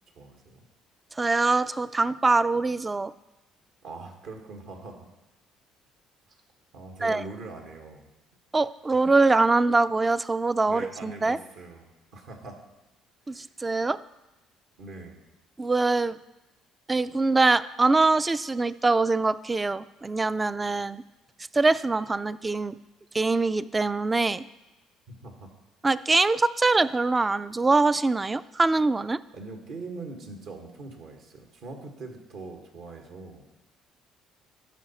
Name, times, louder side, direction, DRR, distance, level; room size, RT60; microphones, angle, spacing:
voice 1, 0.1-0.6 3.8-5.1 6.7-8.1 10.7-12.6 13.3-13.5 14.8-15.2 25.1-25.5 29.3-33.4, right 3 dB, 70° right, 3 dB, 1.5 m, -42 dB
voice 2, 1.2-3.1 7.0-7.2 8.5-11.4 13.3-14.0 15.6-16.2 16.9-21.0 21.5-22.7 23.1-24.4 25.8-29.2, right 3 dB, 20° right, 16 dB, 0.3 m, -23 dB
12.5 x 4.8 x 4.3 m, 0.98 s
supercardioid pair, 65°, 0 cm